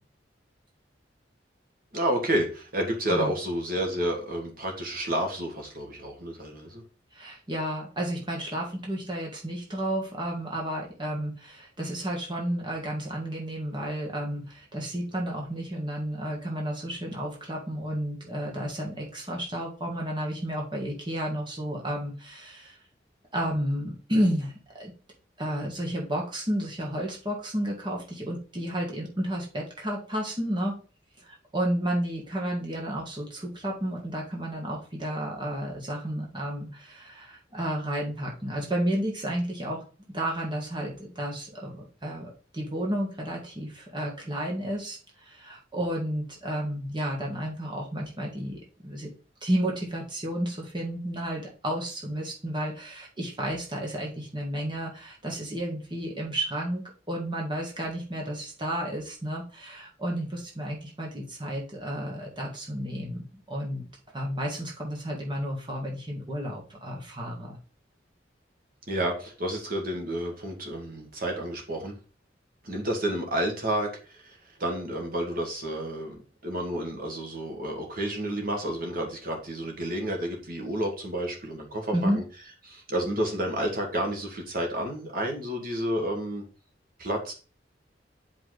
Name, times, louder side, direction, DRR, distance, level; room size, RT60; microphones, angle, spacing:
voice 1, 1.9-6.8 68.9-71.9 72.6-82.2 82.7-86.4 87.0-87.3, right 1 dB, 50° right, 2 dB, 1.9 m, -30 dB
voice 2, 7.1-22.8 23.3-24.9 25.4-30.8 31.2-39.8 40.1-49.1 49.4-63.9 64.1-67.6 81.9-82.2, right 1 dB, 25° right, -1 dB, 2.0 m, -32 dB
9.7 x 5.2 x 4.1 m, 0.37 s
head